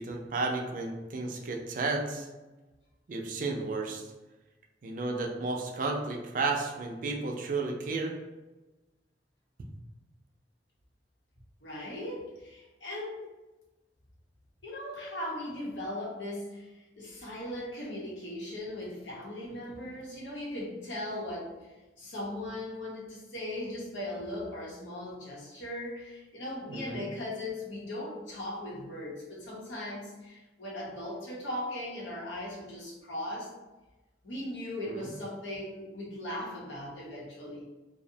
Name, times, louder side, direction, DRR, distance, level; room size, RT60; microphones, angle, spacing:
voice 1, 0.0-2.3 3.1-4.1 4.8-8.1 26.7-27.1 34.9-35.1, right 3 dB, 50° right, 2 dB, 0.4 m, -33 dB
voice 2, 11.6-13.3 14.6-21.5 22.0-33.5 34.2-37.6, left 1 dB, 85° left, -4 dB, 0.8 m, -38 dB
2.6 x 2.0 x 2.6 m, 1.1 s
head